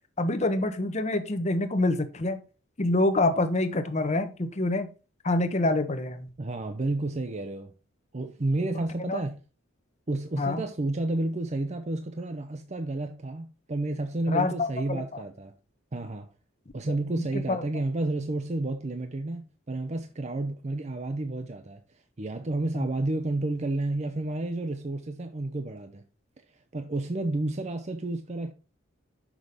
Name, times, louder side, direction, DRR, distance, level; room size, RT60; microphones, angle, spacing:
voice 1, 0.2-2.4 2.8-4.9 5.2-6.3 9.1-9.2 10.4-10.6 14.3-15.2 17.3-17.6 22.7-22.8, left 2 dB, 35° left, 0.9 m, -26 dB
voice 2, 6.4-7.7 8.1-9.4 10.1-15.5 15.9-16.3 16.7-26.0 26.5-28.5, right 2 dB, 35° right, 0.6 m, -31 dB
6.2 x 5.5 x 4.9 m
head